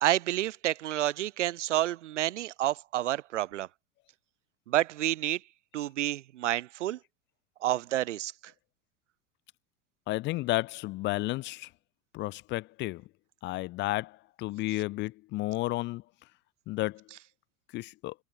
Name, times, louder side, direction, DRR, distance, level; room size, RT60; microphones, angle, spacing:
voice 1, 0.0-3.7 4.7-5.4 5.7-7.0 7.6-8.3, right 14 dB, 60° right, 1.1 m, -29 dB
voice 2, 10.1-11.7 12.1-13.0 13.4-16.0 16.7-17.0 17.7-18.1, left 18 dB, 25° left, 0.7 m, -32 dB
figure-of-eight pair, 85°, 41 cm